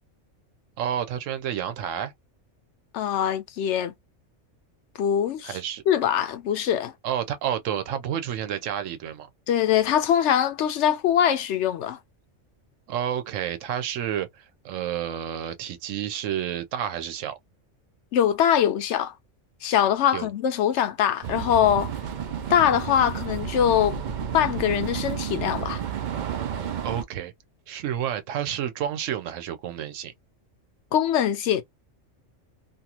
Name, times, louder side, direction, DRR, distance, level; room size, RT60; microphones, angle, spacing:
voice 1, 0.8-2.1 5.4-5.8 7.0-9.3 12.9-17.4 20.1-20.3 26.8-27.3 27.7-30.1, right 10 dB, 80° right, 1.0 m, -30 dB
voice 2, 2.9-3.9 5.0-5.6 5.9-6.9 9.5-12.0 18.1-19.1 19.6-21.9 22.5-24.0 24.3-25.8 30.9-31.6, left 9 dB, 70° left, 0.9 m, -22 dB
sound 1, 21.2-27.0, right 8 dB, 65° right, 0.4 m, -31 dB
2.6 x 2.4 x 2.8 m
omnidirectional pair, 1.3 m